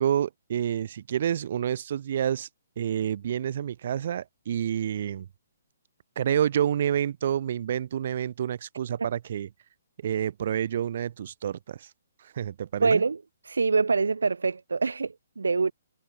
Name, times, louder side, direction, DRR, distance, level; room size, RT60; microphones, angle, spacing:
voice 1, 0.0-2.5 2.8-5.3 6.2-9.5 10.0-11.9 12.2-13.0, right 9 dB, 55° right, 4.3 m, -28 dB
voice 2, 12.8-13.2 13.5-15.7, right 4 dB, 85° right, 3.8 m, -25 dB
hypercardioid pair, 140°, 0 cm